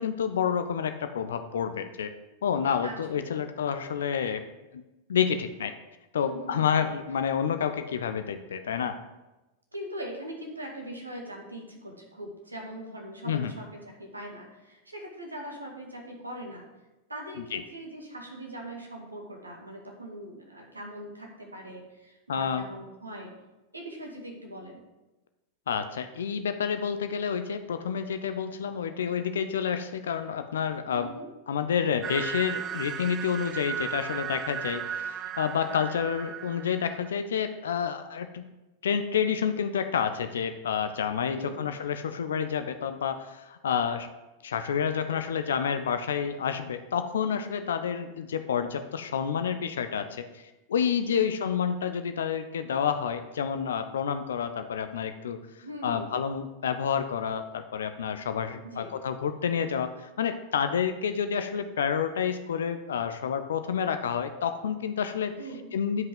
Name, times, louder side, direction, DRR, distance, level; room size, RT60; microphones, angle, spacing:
voice 1, 0.0-2.1 2.4-4.4 4.7-4.8 5.1-5.7 6.1-9.0 13.3-13.5 17.5-17.6 22.3-22.6 25.7-31.1 31.5-38.5 38.8-44.1 44.4-50.4 50.7-55.4 55.8-65.3 65.7-66.1, left 7 dB, 65° left, 9 dB, 0.6 m, -29 dB
voice 2, 2.8-3.4 6.2-6.9 9.7-16.7 17.1-23.3 23.7-24.8 30.9-31.3 41.4-41.7 47.3-47.7 51.1-51.4 55.6-56.1 58.6-58.9 65.4-65.7, right 1 dB, 80° right, 1 dB, 1.9 m, -41 dB
sound 1, 32.0-37.1, right 9 dB, 25° right, 0.4 m, -36 dB
9.5 x 5.4 x 5.4 m, 1.0 s
figure-of-eight pair, 90°, 0 cm